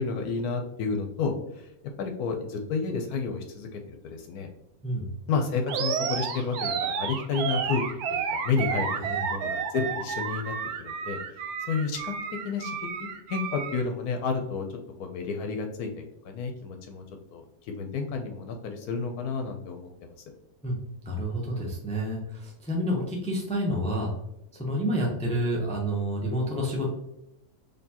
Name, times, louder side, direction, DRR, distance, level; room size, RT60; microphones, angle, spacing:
voice 1, 0.0-1.7 2.0-4.5 5.3-7.8 8.1-9.0 9.3-10.5 10.8-11.4 11.7-12.1 12.4-12.8 13.3-17.0 17.3-20.1, left 5 dB, 80° left, 4 dB, 1.1 m, -31 dB
Animal, 5.7-13.8, right 6 dB, 75° right, 1.0 m, -31 dB
voice 2, 21.0-24.1 24.5-26.9, equal, 10° left, -2 dB, 0.4 m, -29 dB
4.4 x 3.1 x 2.8 m, 0.83 s
omnidirectional pair, 1.6 m